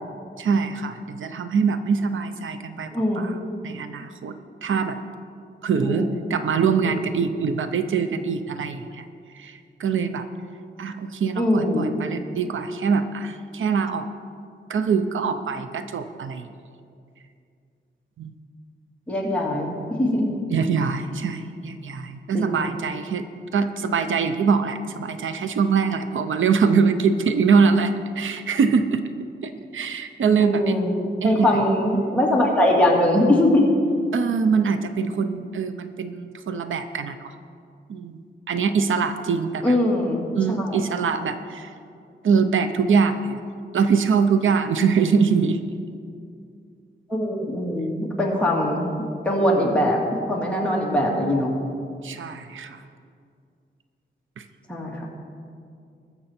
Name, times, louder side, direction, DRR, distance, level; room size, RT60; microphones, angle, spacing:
voice 1, 0.4-3.4 3.6-4.4 4.6-5.0 5.6-9.1 9.3-10.3 10.8-14.1 14.7-16.5 18.2-18.3 20.5-23.2 23.5-29.0 29.4-30.8 31.2-31.5 34.1-37.3 37.9-39.8 40.4-41.7 42.2-43.4 43.7-45.6 52.0-52.8 54.4-54.5, right 5 dB, 90° right, 9 dB, 0.7 m, -23 dB
voice 2, 2.9-3.3 5.8-6.1 6.8-7.0 11.4-11.9 19.1-20.3 22.3-22.5 30.4-30.9 31.2-33.7 39.6-40.8 47.1-48.9 49.2-50.0 50.3-51.5 54.7-55.1, left 1 dB, 5° left, -3 dB, 2.0 m, -21 dB
20.5 x 7.0 x 4.4 m, 2.4 s
wide cardioid pair, 165°, 20 cm